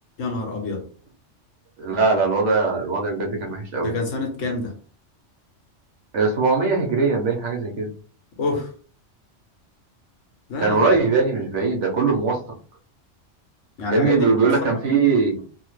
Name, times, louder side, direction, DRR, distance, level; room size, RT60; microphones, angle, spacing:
voice 1, 0.2-0.8 3.8-4.7 8.4-8.7 10.5-10.9 13.8-14.3 14.6-14.7, left 3 dB, 80° left, 2 dB, 1.3 m, -27 dB
voice 2, 1.8-3.9 6.1-7.9 10.6-12.4 13.9-15.3, right 4 dB, 70° right, 0 dB, 1.2 m, -20 dB
3.3 x 2.0 x 3.1 m, 0.41 s
omnidirectional pair, 1.3 m